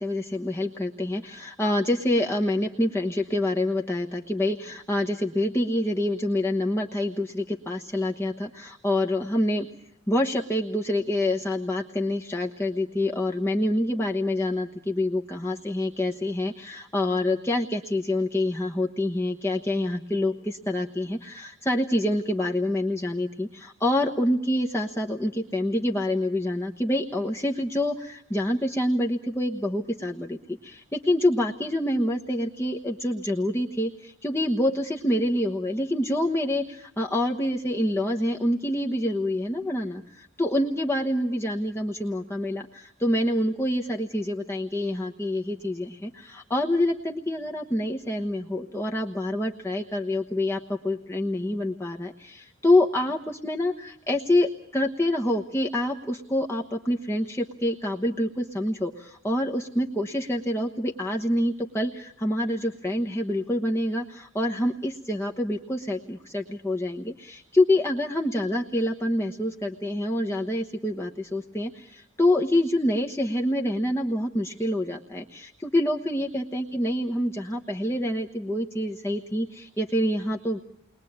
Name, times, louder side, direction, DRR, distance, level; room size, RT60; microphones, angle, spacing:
voice 1, 0.0-9.7 10.1-80.6, left 1 dB, 10° left, 0 dB, 1.1 m, -26 dB
30.0 x 21.5 x 8.7 m, 0.81 s
head